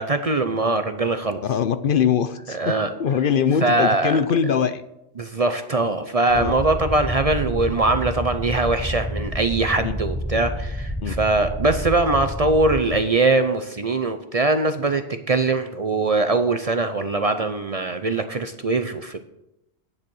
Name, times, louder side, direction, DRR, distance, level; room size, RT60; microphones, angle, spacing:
voice 1, 0.0-1.4 2.5-2.9 3.6-4.2 5.2-19.2, right 2 dB, 40° right, 9 dB, 0.6 m, -22 dB
voice 2, 1.4-2.7 3.0-4.8 6.3-6.6 9.8-9.9 11.0-11.1, left 7 dB, 60° left, 12 dB, 0.7 m, -22 dB
sound 1, 6.3-12.8, equal, 5° right, 1.1 m, -29 dB
9.7 x 7.5 x 6.2 m, 0.88 s
omnidirectional pair, 1.1 m